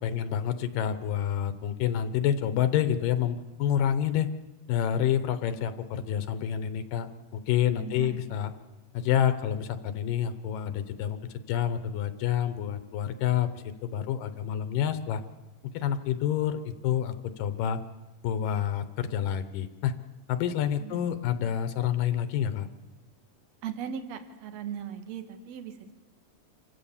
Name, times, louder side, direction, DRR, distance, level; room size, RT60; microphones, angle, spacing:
voice 1, 0.0-4.3 4.7-8.5 8.9-15.2 15.7-17.8 18.2-19.9 20.3-22.7, left 10 dB, 80° left, 11 dB, 2.6 m, -28 dB
voice 2, 7.8-8.2 20.8-21.0 23.6-25.9, right 8 dB, 60° right, 8 dB, 2.5 m, -38 dB
27.5 x 15.5 x 7.2 m, 1.1 s
omnidirectional pair, 3.9 m